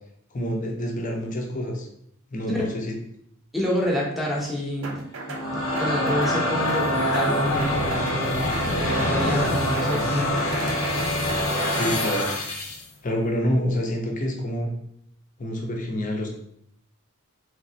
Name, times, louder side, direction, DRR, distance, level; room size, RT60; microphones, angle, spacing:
voice 1, 0.3-1.9 2.3-2.9 11.7-12.3 13.0-14.7 15.4-16.3, equal, 35° left, 1 dB, 0.6 m, -27 dB
voice 2, 3.5-5.0 5.3-10.8, equal, ahead, -3 dB, 0.7 m, -28 dB
sound 1, 4.8-5.5 5.8-6.4 6.7-7.3 7.6-8.2 8.5-9.2 9.4-10.1 10.4-11.9, right 3 dB, 65° right, 0.5 m, -36 dB
sound 2, 5.1-12.8, left 1 dB, 75° left, 0.8 m, -25 dB
3.5 x 3.1 x 2.7 m, 0.72 s
head